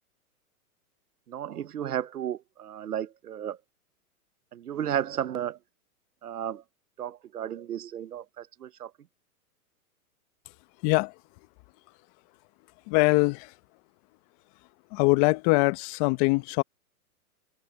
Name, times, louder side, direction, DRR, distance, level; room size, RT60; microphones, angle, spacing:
voice 1, 1.3-3.6 4.5-5.6 6.2-6.6 7.0-8.9, right 10 dB, 85° right, 1.4 m, -33 dB
voice 2, 10.8-11.1 12.9-13.5 14.9-16.6, left 26 dB, 40° left, 1.4 m, -23 dB
hypercardioid pair, 125°, 45 cm